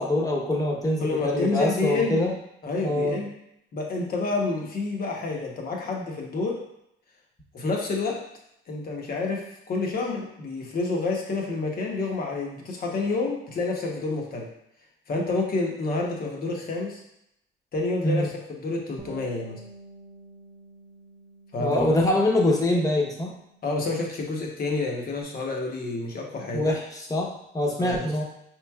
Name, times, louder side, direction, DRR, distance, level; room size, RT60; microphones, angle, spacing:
voice 1, 0.0-2.3 2.8-3.2 18.0-18.3 21.6-23.3 26.5-28.2, left 1 dB, 15° left, -2 dB, 0.9 m, -24 dB
voice 2, 1.0-2.2 2.6-3.3 3.7-6.6 7.5-8.2 8.7-14.5 15.1-17.0 17.7-19.6 21.5-21.8 23.6-26.7 27.8-28.1, left 3 dB, 45° left, -1 dB, 1.0 m, -29 dB
Bass guitar, 19.0-25.2, right 3 dB, 25° right, 0.8 m, -49 dB
5.0 x 3.1 x 2.3 m, 0.79 s
cardioid pair, 105°, 20 cm